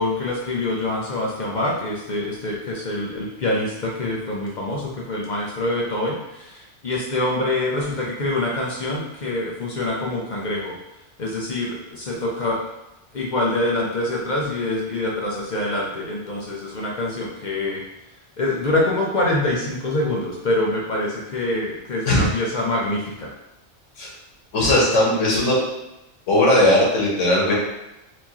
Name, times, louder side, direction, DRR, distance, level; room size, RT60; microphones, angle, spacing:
voice 1, 0.0-6.5 6.8-10.7 11.2-12.6 13.1-17.8 18.4-23.3, left 2 dB, 50° left, -3 dB, 0.5 m, -25 dB
voice 2, 24.5-25.6 26.3-27.5, left 1 dB, 90° left, -3 dB, 1.4 m, -18 dB
4.4 x 2.7 x 2.8 m, 0.93 s
omnidirectional pair, 1.2 m